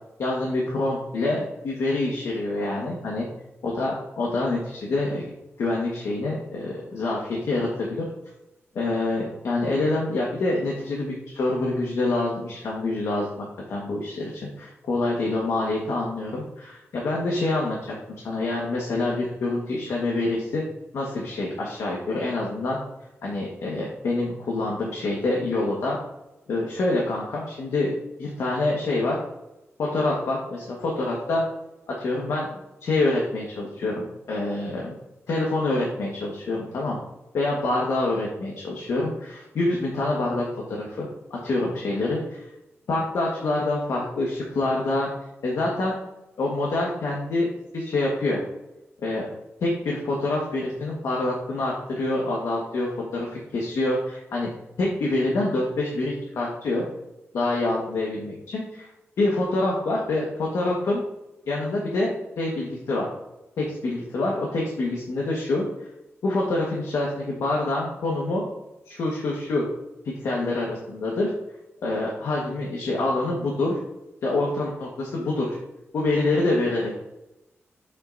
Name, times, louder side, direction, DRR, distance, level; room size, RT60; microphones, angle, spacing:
voice 1, 0.2-3.2 3.6-5.2 5.6-8.1 8.7-20.6 20.9-22.8 23.2-26.0 26.5-27.9 28.2-29.2 29.8-31.4 31.9-34.9 35.3-37.0 37.3-42.4 42.9-45.1 45.4-46.0 46.4-47.5 47.7-48.4 49.0-49.3 49.6-54.5 54.8-56.9 57.3-58.9 59.2-61.0 61.5-63.1 63.6-65.6 66.2-68.5 68.9-69.6 70.0-71.3 71.8-73.8 74.2-75.6 75.9-76.9, left 2 dB, 85° left, -3 dB, 1.5 m, -26 dB
8.3 x 6.0 x 2.7 m, 0.94 s
wide cardioid pair, 170°, 5 cm